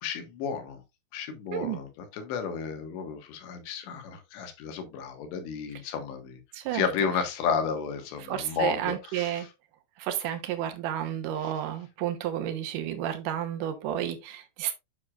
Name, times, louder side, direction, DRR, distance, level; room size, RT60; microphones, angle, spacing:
voice 1, 0.0-0.8 1.1-6.4 6.7-9.5 11.4-11.5, left 6 dB, 75° left, 3.7 m, -32 dB
voice 2, 1.5-1.8 6.5-6.9 8.2-9.5 10.0-14.8, right 11 dB, 80° right, 1.8 m, -31 dB
9.5 x 6.5 x 2.4 m
omnidirectional pair, 5.2 m